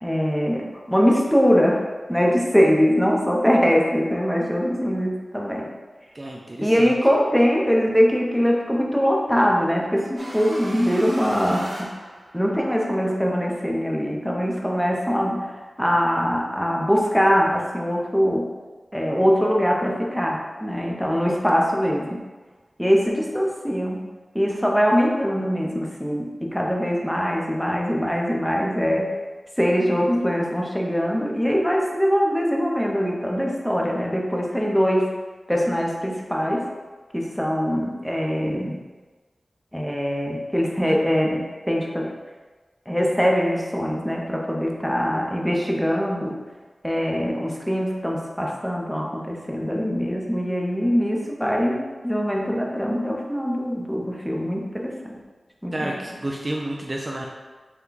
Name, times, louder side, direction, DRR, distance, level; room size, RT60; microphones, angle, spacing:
voice 1, 0.0-5.7 6.6-11.9 12.3-18.5 18.9-22.2 22.8-24.0 24.3-29.1 29.6-35.2 35.5-36.7 37.1-38.8 39.7-42.1 42.9-46.4 46.8-55.1 55.6-55.9, equal, ahead, -1 dB, 0.7 m, -22 dB
voice 2, 6.1-6.9 55.7-57.3, right 1 dB, 30° right, -1 dB, 0.4 m, -30 dB
sound 1, 10.2-12.7, right 1 dB, 60° right, 0.9 m, -37 dB
5.7 x 2.2 x 3.8 m, 1.3 s
wide cardioid pair, 90°, 0 cm